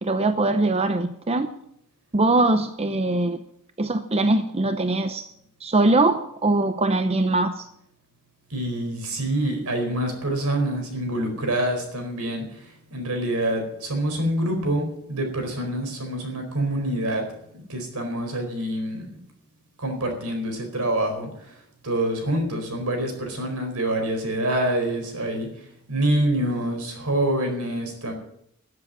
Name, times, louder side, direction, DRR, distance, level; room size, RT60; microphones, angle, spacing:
voice 1, 0.0-1.5 2.1-3.4 3.8-5.3 5.6-7.7, right 2 dB, 25° right, 9 dB, 0.7 m, -22 dB
voice 2, 8.5-19.1 19.8-28.1, right 1 dB, 80° right, 4 dB, 4.5 m, -26 dB
14.0 x 7.8 x 9.0 m, 0.73 s
head